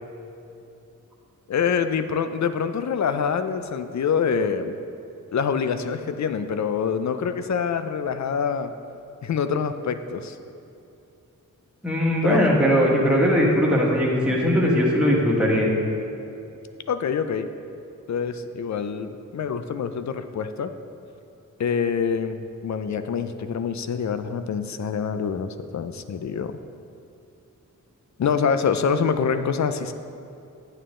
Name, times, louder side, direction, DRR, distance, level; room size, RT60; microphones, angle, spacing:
voice 1, 1.5-4.8 5.3-8.7 9.2-10.4 12.2-12.4 16.9-17.5 18.1-20.7 21.6-26.6 28.2-29.9, left 6 dB, 60° left, 10 dB, 0.6 m, -25 dB
voice 2, 11.8-15.7, equal, 5° right, -5 dB, 1.8 m, -20 dB
8.9 x 8.8 x 3.8 m, 2.7 s
wide cardioid pair, 90°, 32 cm